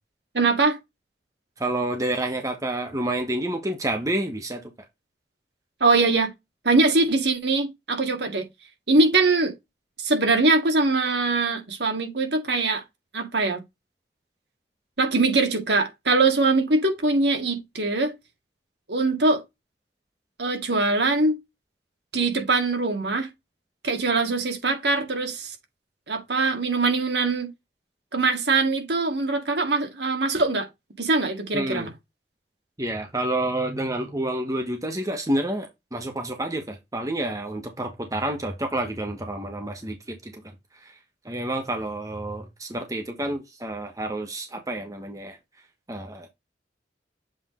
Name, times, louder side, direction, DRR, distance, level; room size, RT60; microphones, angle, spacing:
voice 1, 0.3-0.8 5.8-6.3 6.6-8.5 8.9-9.5 10.0-12.8 13.1-13.6 15.0-18.1 18.9-19.4 20.4-21.4 22.1-23.3 23.8-25.5 26.1-27.5 28.1-30.7 31.0-31.8, right 3 dB, 75° right, 2.0 m, -22 dB
voice 2, 1.6-4.6 31.5-31.9 32.8-40.4 40.8-40.9 41.2-45.4 45.9-46.3, right 1 dB, 20° right, 1.2 m, -29 dB
7.7 x 3.5 x 3.7 m
head